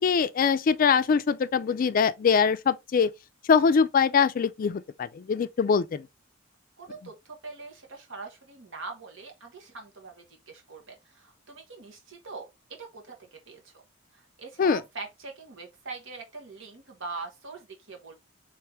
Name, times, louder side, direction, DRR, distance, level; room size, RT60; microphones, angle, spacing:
voice 1, 0.0-3.1 3.5-6.1 14.6-14.8, left 6 dB, 45° left, 0.3 m, -23 dB
voice 2, 6.8-12.5 12.8-13.7 14.1-18.1, right 3 dB, 80° right, 1.2 m, -42 dB
3.5 x 3.3 x 3.1 m
head